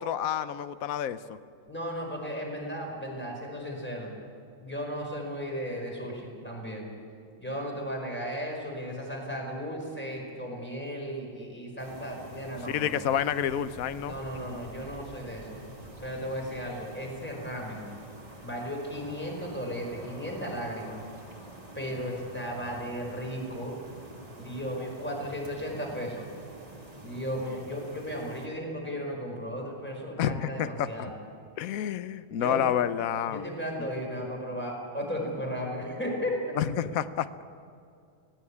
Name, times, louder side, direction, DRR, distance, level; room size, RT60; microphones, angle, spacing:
voice 1, 0.0-1.4 12.7-14.1 30.2-31.1 31.6-33.5 33.8-33.9 36.6-37.3, left 10 dB, 60° left, 13 dB, 0.9 m, -29 dB
voice 2, 1.7-4.1 4.6-6.9 7.4-12.9 14.0-15.6 16.0-17.9 18.4-21.0 21.7-23.8 24.3-26.3 27.0-31.2 32.4-32.6 33.3-36.4, equal, 5° left, 0 dB, 4.9 m, -35 dB
sound 1, 11.8-28.5, right 1 dB, 15° right, 2.9 m, -47 dB
25.0 x 18.5 x 8.6 m, 2.4 s
omnidirectional pair, 2.4 m